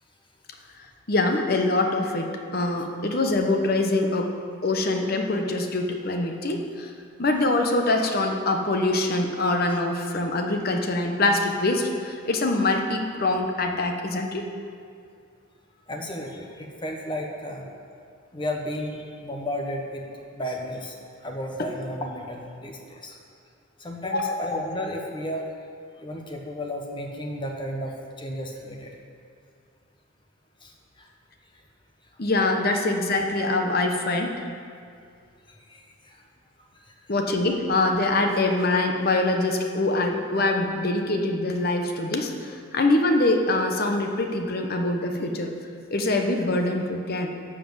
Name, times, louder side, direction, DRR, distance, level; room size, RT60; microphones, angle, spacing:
voice 1, 1.1-4.3 4.6-6.9 7.2-14.5 24.0-24.4 32.2-34.3 37.1-45.5 45.9-47.3, left 2 dB, 50° left, 4 dB, 1.0 m, -24 dB
voice 2, 15.9-17.7 18.3-20.0 20.3-21.0 21.2-23.2 23.8-25.5 26.0-28.9 30.6-30.7 31.0-31.1 35.7-36.2, left 1 dB, 25° left, 1 dB, 1.2 m, -33 dB
13.0 x 5.1 x 7.7 m, 2.3 s
head